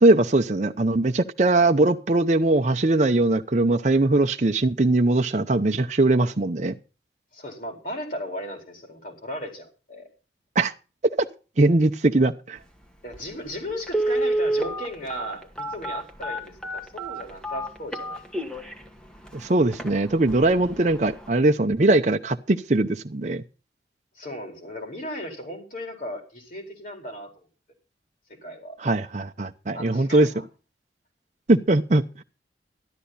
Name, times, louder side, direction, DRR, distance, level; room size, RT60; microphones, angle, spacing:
voice 1, 0.0-6.8 10.6-10.7 11.2-11.3 11.6-12.6 19.3-23.4 28.8-30.3 31.5-32.2, right 2 dB, 40° right, 0.7 m, -21 dB
voice 2, 7.3-10.1 13.0-18.2 24.1-27.5 28.3-28.8 29.7-30.4, equal, 50° left, 4.4 m, -36 dB
Telephone, 13.1-13.2 13.9-18.7 19.3-19.4 19.7-19.9 20.3-20.6 20.9-21.0, right 1 dB, 5° left, 1.5 m, -27 dB
13.0 x 12.0 x 4.1 m
head